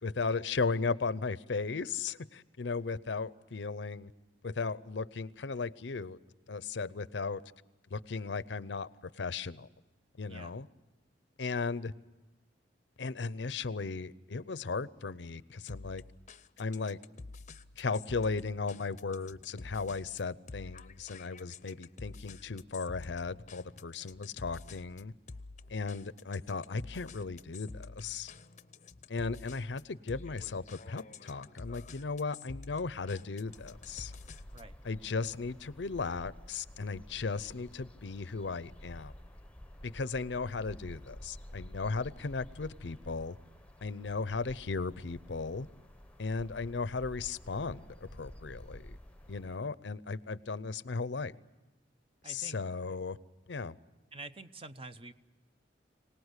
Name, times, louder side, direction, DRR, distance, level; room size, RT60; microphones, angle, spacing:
voice 1, 0.0-4.1 4.4-6.2 6.5-7.4 7.9-8.9 9.2-9.7 10.2-10.7 11.4-11.9 13.0-16.0 16.6-17.0 17.8-25.1 25.7-28.3 29.1-34.1 34.8-39.1 39.8-43.4 43.8-45.7 46.2-49.0 49.3-51.3 52.2-53.2 53.5-53.8, left 4 dB, 80° left, 0.7 m, -36 dB
voice 2, 10.3-10.6 34.5-34.8 52.2-52.6 54.1-55.1, right 3 dB, 30° right, 0.8 m, -47 dB
sound 1, 15.7-34.8, left 3 dB, 40° left, 0.7 m, -49 dB
sound 2, 33.5-49.6, left 1 dB, 5° left, 0.9 m, -51 dB
25.5 x 18.5 x 8.1 m
head